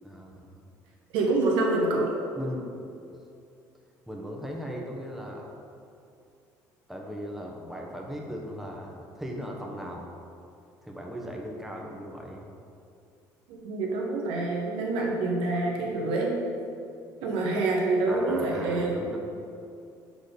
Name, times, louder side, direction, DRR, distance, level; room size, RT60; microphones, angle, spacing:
voice 1, 0.0-0.6 2.4-2.7 4.1-5.5 6.9-10.1 10.8-12.6 18.1-19.2, equal, 5° right, -1 dB, 1.2 m, -38 dB
voice 2, 1.1-2.1 13.5-16.4 17.2-19.0, right 2 dB, 80° right, -1 dB, 1.1 m, -26 dB
6.6 x 3.9 x 5.3 m, 2.5 s
supercardioid pair, 75°, 9 cm